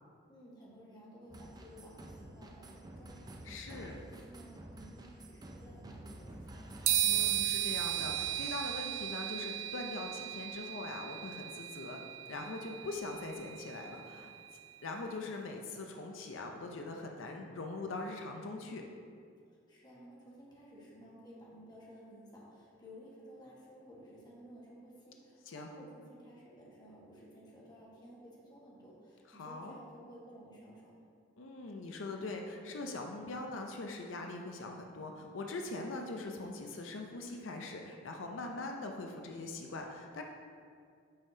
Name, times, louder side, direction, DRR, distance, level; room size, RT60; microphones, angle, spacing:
voice 1, 0.3-6.8 19.7-30.9, equal, 20° left, -5 dB, 1.4 m, -55 dB
sound 1, 1.3-8.7, right 1 dB, 20° right, 0.5 m, -50 dB
voice 2, 3.4-4.0 7.0-12.0 12.3-14.3 14.8-18.8 25.5-25.7 29.3-29.8 31.4-40.2, left 2 dB, 85° left, 2 dB, 0.6 m, -42 dB
sound 2, 6.9-14.5, right 11 dB, 85° right, 0.4 m, -36 dB
8.9 x 5.4 x 2.7 m, 2.3 s
head